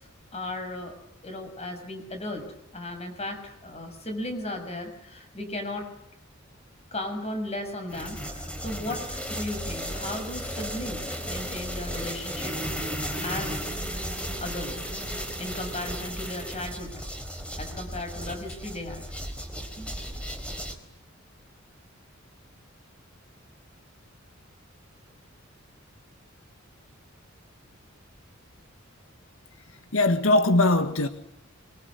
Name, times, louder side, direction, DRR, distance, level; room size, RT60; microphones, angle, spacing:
voice 1, 0.3-0.9 1.2-2.5 2.7-5.9 6.9-12.6 13.2-13.8 14.4-14.9 15.4-17.0 17.6-19.0 19.5-19.9, left 1 dB, 30° left, 6 dB, 6.5 m, -36 dB
sound 1, 7.9-20.7, equal, 5° left, 4.2 m, -34 dB
voice 2, 29.9-31.1, left 2 dB, 85° left, 9 dB, 1.7 m, -20 dB
24.5 x 24.0 x 9.7 m, 0.81 s
head